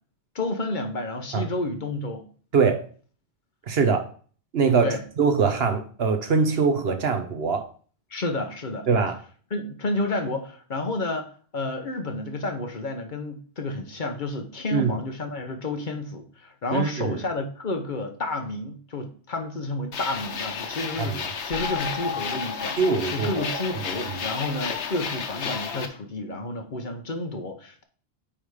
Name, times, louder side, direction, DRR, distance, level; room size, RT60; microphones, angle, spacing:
voice 1, 0.3-2.2 4.6-5.0 8.1-8.9 9.5-22.8 23.1-27.8, left 2 dB, 50° left, 5 dB, 1.0 m, -30 dB
voice 2, 3.7-4.1 4.5-4.9 5.2-7.7 8.9-9.2 14.7-14.9 16.7-17.2 21.0-21.2 22.8-24.2, right 5 dB, 65° right, 8 dB, 1.2 m, -23 dB
sound 1, 19.9-25.9, left 6 dB, 90° left, 1.2 m, -31 dB
8.6 x 3.5 x 4.9 m, 0.43 s
omnidirectional pair, 1.1 m